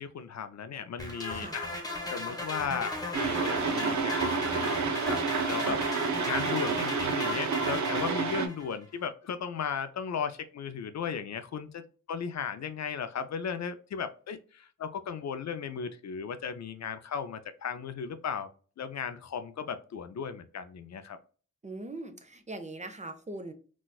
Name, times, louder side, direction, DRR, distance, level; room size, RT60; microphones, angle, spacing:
voice 1, 0.0-1.7 2.1-5.2 5.5-5.8 6.3-11.8 12.1-18.5 18.8-21.2, left 7 dB, 60° left, 10 dB, 0.4 m, -36 dB
sound 1, 1.0-8.7, left 2 dB, 10° left, 1.1 m, -36 dB
sound 2, 3.1-8.5, right 5 dB, 65° right, 0.6 m, -29 dB
voice 2, 21.6-23.5, right 2 dB, 25° right, 6 dB, 0.7 m, -41 dB
4.1 x 2.3 x 2.3 m, 0.39 s
cardioid pair, 55°, 31 cm